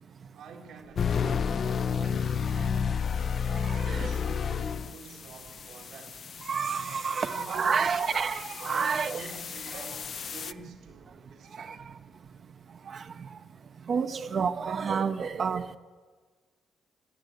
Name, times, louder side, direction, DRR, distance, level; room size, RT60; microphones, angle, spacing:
voice 1, 0.3-3.4 3.8-6.3 7.2-8.0 8.7-11.8, right 4 dB, 80° right, 2.0 m, -48 dB
sound 1, 1.0-10.5, left 6 dB, 50° left, 0.3 m, -32 dB
voice 2, 3.7-4.1 6.5-9.3 9.7-9.9 11.7-11.8 12.9-13.0 13.9-15.7, right 6 dB, 50° right, 0.6 m, -29 dB
12.5 x 12.5 x 7.8 m
cardioid pair, 90°, 0 cm